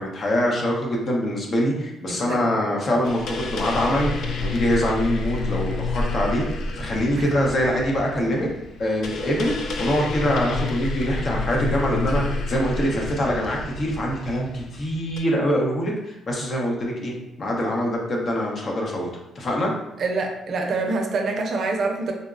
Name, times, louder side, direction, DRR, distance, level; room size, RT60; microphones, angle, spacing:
voice 1, 0.0-4.1 4.4-8.5 8.8-19.1 19.4-19.7, equal, 45° left, -1 dB, 0.7 m, -24 dB
voice 2, 2.1-2.5 7.2-7.4 20.0-22.1, right 3 dB, 60° right, 2 dB, 0.5 m, -26 dB
sound 1, 3.0-15.2, left 2 dB, 70° left, 0.4 m, -29 dB
3.8 x 2.1 x 2.4 m, 0.92 s
cardioid pair, 90°, 0 cm